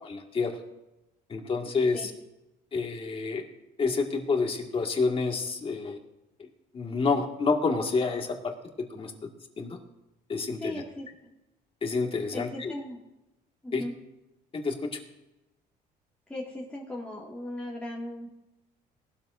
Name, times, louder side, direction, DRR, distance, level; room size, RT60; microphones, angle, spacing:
voice 1, 0.1-0.6 1.3-2.1 2.7-3.5 3.8-6.0 6.4-6.5 6.7-9.3 9.6-9.8 10.3-10.7 11.8-12.7 13.7-13.9 14.5-15.0, left 4 dB, 35° left, 2 dB, 1.9 m, -28 dB
voice 2, 10.6-11.1 12.3-13.0 13.6-13.9 16.3-18.3, left 1 dB, 5° left, -5 dB, 2.1 m, -37 dB
19.0 x 12.5 x 2.6 m, 0.96 s
cardioid pair, 110°, 17 cm